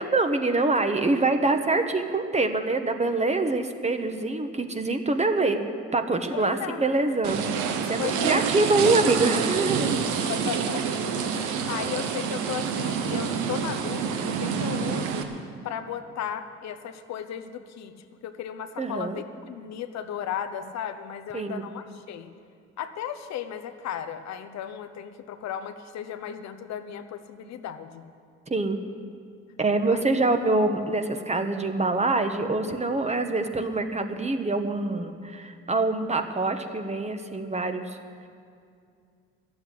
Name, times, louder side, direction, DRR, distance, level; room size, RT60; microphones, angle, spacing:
voice 1, 0.0-5.6 5.9-9.9 18.8-19.2 21.3-21.7 28.5-28.8 29.6-38.0, right 2 dB, 25° right, 7 dB, 1.3 m, -25 dB
voice 2, 6.3-6.8 8.0-8.4 10.3-10.9 11.1-15.3 15.6-17.9 18.2-22.3 22.8-28.0 29.9-30.0, left 9 dB, 65° left, 9 dB, 0.9 m, -35 dB
sound 1, 7.2-15.2, right 6 dB, 80° right, 1.1 m, -27 dB
12.5 x 7.9 x 10.0 m, 2.3 s
supercardioid pair, 60°, 29 cm